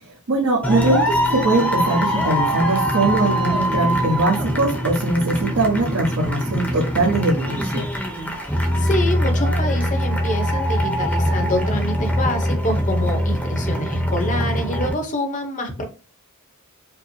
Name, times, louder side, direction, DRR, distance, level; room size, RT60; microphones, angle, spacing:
voice 1, 0.0-7.8, right 2 dB, 75° right, -3 dB, 1.0 m, -21 dB
sound 1, 0.6-14.9, equal, 5° left, 0.8 m, -22 dB
voice 2, 8.4-15.8, left 1 dB, 35° left, 4 dB, 0.9 m, -26 dB
4.9 x 2.0 x 3.1 m, 0.34 s
head